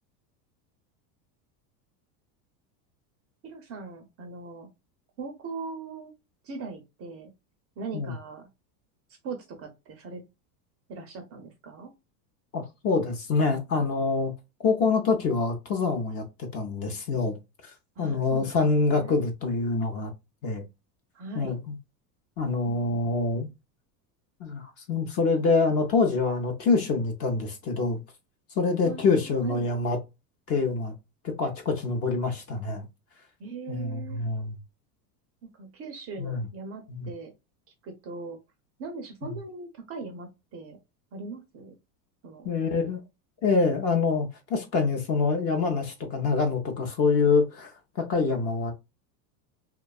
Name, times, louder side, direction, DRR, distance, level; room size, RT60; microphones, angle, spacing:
voice 1, 3.4-4.7 5.2-6.1 6.4-7.3 7.8-8.5 9.2-10.2 10.9-11.9 18.0-19.2 21.1-21.6 22.6-23.1 28.8-29.7 33.4-34.2 35.4-37.3 37.8-38.4 38.8-40.8 41.1-41.7 42.2-42.5, right 4 dB, 30° right, 0.5 m, -40 dB
voice 2, 12.5-14.3 14.6-17.3 18.0-20.1 20.4-20.6 21.3-21.8 22.4-23.5 24.4-24.6 24.9-28.0 28.6-30.0 30.5-30.9 31.2-32.8 33.7-34.6 36.2-36.5 36.9-37.1 39.2-39.3 42.4-43.0 43.4-47.7 48.0-48.7, left 4 dB, 30° left, 0.5 m, -25 dB
2.7 x 2.2 x 2.2 m
supercardioid pair, 125°, 48 cm